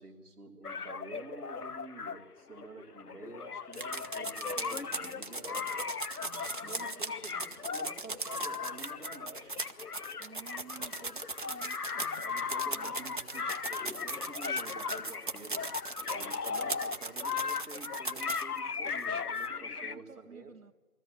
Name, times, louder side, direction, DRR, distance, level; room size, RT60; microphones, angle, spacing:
voice 1, 0.0-5.8 6.6-9.6 12.2-15.6 16.0-20.5, right 3 dB, 5° right, -10 dB, 1.6 m, -49 dB
sound 1, 0.6-20.0, left 5 dB, 85° left, 0.9 m, -38 dB
sound 2, 3.7-18.6 19.0-19.1 19.4-19.5, right 3 dB, 35° right, 0.7 m, -39 dB
voice 2, 6.2-7.0 10.2-13.0 19.5-20.7, right 5 dB, 65° right, 14 dB, 1.4 m, -53 dB
21.0 x 14.5 x 9.6 m, 1.3 s
figure-of-eight pair, 160°, 44 cm